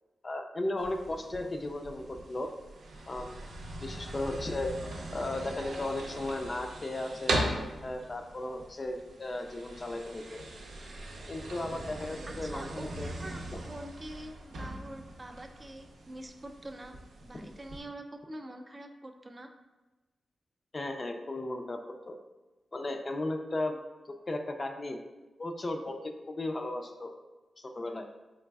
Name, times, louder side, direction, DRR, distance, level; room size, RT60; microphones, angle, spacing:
voice 1, 0.2-2.5 3.1-3.4 3.8-4.7 5.1-7.4 7.8-10.4 11.3-13.1 20.7-21.8 22.1-22.2 22.7-23.8 24.1-25.0 25.4-27.1 27.6-28.1, left 2 dB, 40° left, 4 dB, 0.4 m, -35 dB
sound 1, 0.8-17.8, right 1 dB, 80° right, 0.6 m, -40 dB
voice 2, 12.2-17.0 17.2-19.5, right 1 dB, 30° right, 5 dB, 0.4 m, -45 dB
4.0 x 3.1 x 2.3 m, 1.1 s
cardioid pair, 65°, 0 cm